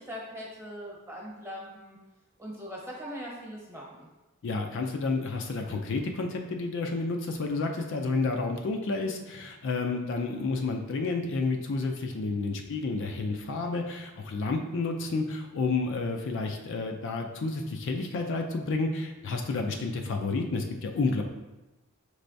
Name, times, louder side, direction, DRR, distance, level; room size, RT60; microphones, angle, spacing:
voice 1, 0.0-2.0 2.4-4.1, equal, 15° right, -4 dB, 1.0 m, -41 dB
voice 2, 4.4-21.2, left 3 dB, 60° left, 3 dB, 0.4 m, -30 dB
5.3 x 3.3 x 2.6 m, 1.1 s
head